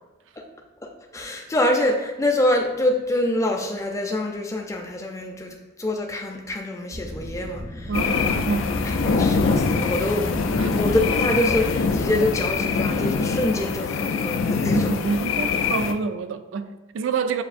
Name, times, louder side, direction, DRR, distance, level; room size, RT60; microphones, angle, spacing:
voice 1, 0.8-7.9 8.2-8.4 8.8-14.9, left 1 dB, 15° left, 0.4 m, -25 dB
Wind, 6.9-13.9, left 1 dB, 45° left, 0.7 m, -34 dB
sound 1, 7.9-15.9, left 5 dB, 85° left, 0.3 m, -24 dB
voice 2, 7.9-8.8 10.6-10.8 14.7-17.4, right 4 dB, 75° right, 0.3 m, -27 dB
7.2 x 2.6 x 2.5 m
head